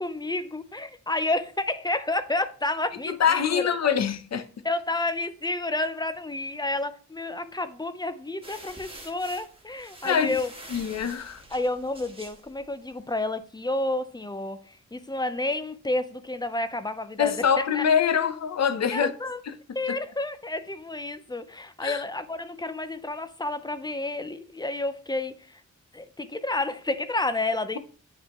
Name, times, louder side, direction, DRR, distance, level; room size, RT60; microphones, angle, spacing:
voice 1, 0.0-3.8 4.6-10.5 11.5-17.9 18.9-19.4 19.7-25.6 25.9-27.8, left 2 dB, 15° left, 0.4 m, -30 dB
voice 2, 3.1-4.4 10.0-10.3 10.7-11.4 17.2-19.1 19.5-19.6 21.8-22.0, left 7 dB, 55° left, 0.6 m, -24 dB
sound 1, 8.4-13.1, right 1 dB, 15° right, 1.3 m, -47 dB
8.9 x 3.6 x 2.9 m
wide cardioid pair, 105°, 31 cm